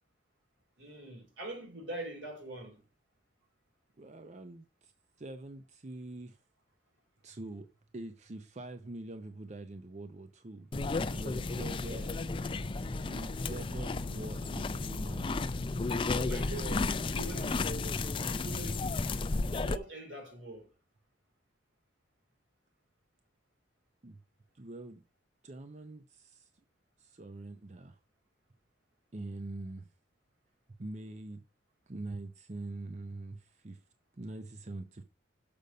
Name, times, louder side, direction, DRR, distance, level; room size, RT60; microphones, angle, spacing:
voice 1, 0.8-2.8 16.2-18.0 18.4-19.2 19.6-20.7, right 2 dB, 80° right, 2.9 m, -43 dB
voice 2, 4.0-4.9 5.2-6.4 7.2-7.7 7.9-10.7 11.1-12.1 12.8-15.4 15.8-16.2 24.0-24.2 24.5-25.0 25.4-26.6 27.0-28.0 29.1-29.9 30.8-31.4 31.9-33.8 34.1-35.0, right 2 dB, 35° right, 0.6 m, -44 dB
sound 1, 10.7-19.8, left 3 dB, 25° left, 0.4 m, -33 dB
6.8 x 5.2 x 5.3 m
head